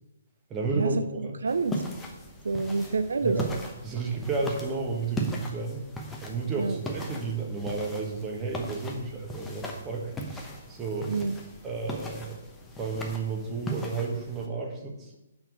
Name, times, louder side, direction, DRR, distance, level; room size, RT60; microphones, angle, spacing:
voice 1, 0.5-1.4 3.2-3.5 3.8-5.8 6.2-11.2 11.6-12.4 12.8-15.2, right 4 dB, 20° right, 1 dB, 1.3 m, -32 dB
voice 2, 1.4-1.8 2.4-3.4 6.6-6.8 11.1-11.4, right 4 dB, 70° right, 10 dB, 0.4 m, -27 dB
sound 1, 1.5-14.5, left 1 dB, 10° left, 1.0 m, -39 dB
5.9 x 4.3 x 6.2 m, 0.92 s
figure-of-eight pair, 135°, 0 cm